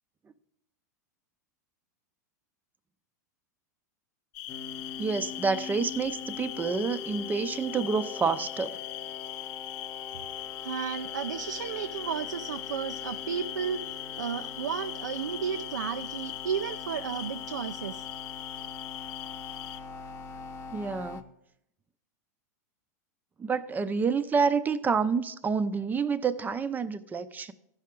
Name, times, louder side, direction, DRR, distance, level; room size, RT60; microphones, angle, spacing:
sound 1, 4.3-19.8, left 15 dB, 55° left, 0.5 m, -40 dB
sound 2, 4.5-21.2, left 4 dB, 25° left, 0.9 m, -43 dB
voice 1, 5.0-8.8 20.7-21.2 23.4-27.5, right 5 dB, 20° right, 0.5 m, -28 dB
voice 2, 10.6-18.0, right 8 dB, 90° right, 0.4 m, -33 dB
15.0 x 5.5 x 3.7 m
hypercardioid pair, 110°, 9 cm